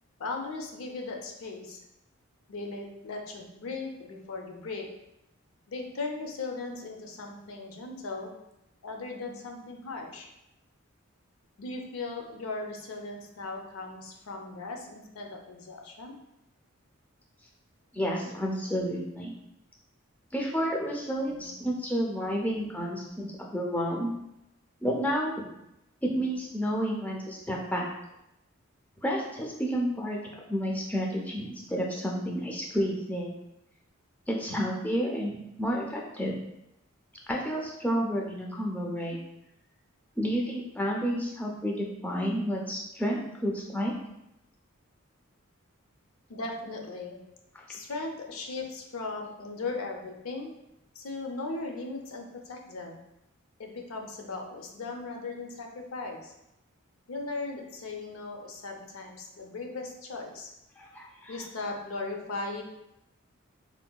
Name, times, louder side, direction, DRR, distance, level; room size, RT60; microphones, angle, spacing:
voice 1, 0.2-1.8 2.5-4.9 5.7-8.3 8.8-10.3 11.6-16.2 21.3-21.5 22.2-22.7 46.3-47.2 47.7-50.5 50.9-53.0 53.6-56.3 57.1-60.5 61.3-62.6, left 3 dB, 80° left, 2 dB, 0.5 m, -38 dB
voice 2, 17.9-19.3 20.3-24.1 24.8-25.5 26.0-27.9 29.0-30.2 30.5-33.4 34.3-36.3 37.3-39.2 40.2-43.9 60.8-61.4, equal, 5° left, -1 dB, 0.3 m, -30 dB
3.6 x 2.2 x 2.3 m, 0.85 s
head